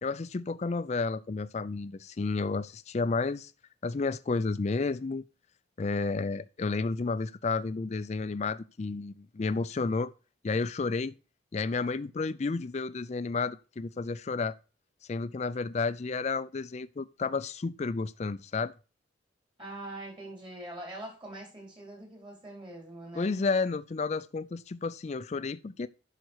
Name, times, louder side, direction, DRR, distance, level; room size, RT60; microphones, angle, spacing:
voice 1, 0.0-3.5 3.8-5.2 5.8-10.1 10.4-11.1 11.5-14.6 15.1-18.7 23.2-25.9, left 4 dB, 35° left, 0.4 m, -31 dB
voice 2, 19.6-23.4, right 1 dB, 25° right, 4.5 m, -43 dB
10.5 x 5.9 x 4.6 m
head